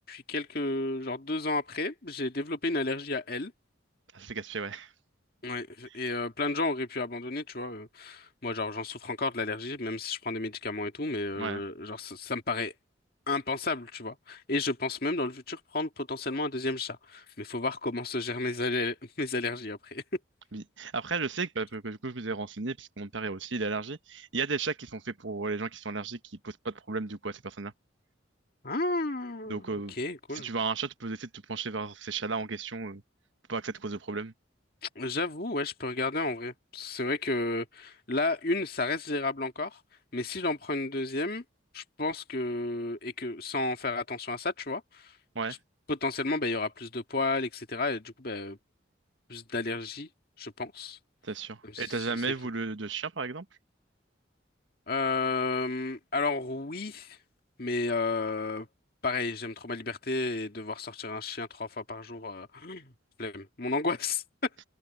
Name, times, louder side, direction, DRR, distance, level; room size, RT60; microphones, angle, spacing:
voice 1, 0.1-3.5 5.4-12.7 13.3-20.0 28.6-30.5 34.8-39.8 40.1-41.4 41.7-45.1 45.9-48.6 49.3-50.1 50.4-51.0 51.6-52.2 54.9-57.2 57.6-58.7 59.0-62.9 63.2-64.5, left 3 dB, 50° left, 2.0 m, -32 dB
voice 2, 4.1-4.9 11.4-11.6 20.5-27.7 29.5-29.9 30.3-33.0 33.5-34.3 45.3-45.6 51.2-53.4, right 4 dB, 75° right, 1.3 m, -34 dB
head